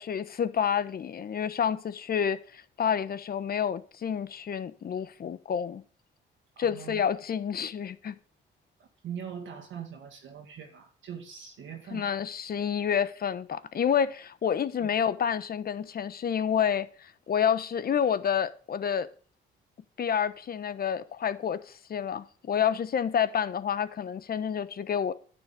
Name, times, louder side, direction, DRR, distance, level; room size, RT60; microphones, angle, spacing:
voice 1, 0.0-5.8 6.6-8.2 11.9-19.1 20.0-25.1, left 8 dB, 50° left, 1.1 m, -29 dB
voice 2, 6.6-7.0 8.8-12.1 14.8-14.9, right 8 dB, 75° right, 1.9 m, -42 dB
10.5 x 9.5 x 5.3 m
cardioid pair, 90°, 20 cm